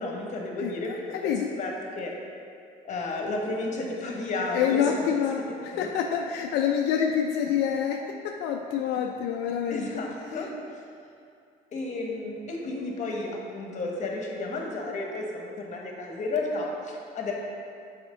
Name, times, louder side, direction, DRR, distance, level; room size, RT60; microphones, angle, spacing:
voice 1, 0.0-1.3 1.6-2.1 2.8-4.9 5.7-5.9 9.7-10.5 11.7-17.3, left 2 dB, 45° left, 0 dB, 1.1 m, -32 dB
voice 2, 0.6-1.5 4.5-8.0 8.2-9.9, left 8 dB, 85° left, 2 dB, 0.4 m, -27 dB
6.1 x 4.3 x 3.8 m, 2.4 s
cardioid pair, 110°, 17 cm